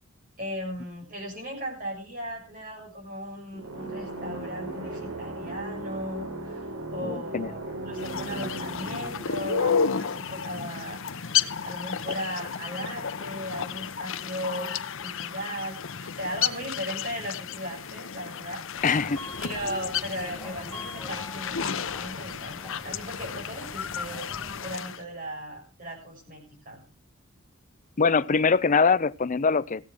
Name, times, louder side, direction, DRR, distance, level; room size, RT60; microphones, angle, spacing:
voice 1, 0.4-19.0 19.4-26.8, equal, 45° right, -1 dB, 7.0 m, -37 dB
sound 1, 3.5-11.2, right 1 dB, 80° right, 3.4 m, -37 dB
voice 2, 7.0-7.5 18.8-19.2 28.0-29.9, left 5 dB, 40° left, 16 dB, 0.6 m, -23 dB
sound 2, 7.9-25.0, left 7 dB, 70° left, 0.8 m, -32 dB
Subway metro underground, 18.7-24.8, left 1 dB, 5° left, 6.0 m, -43 dB
16.5 x 9.1 x 6.2 m, 0.36 s
head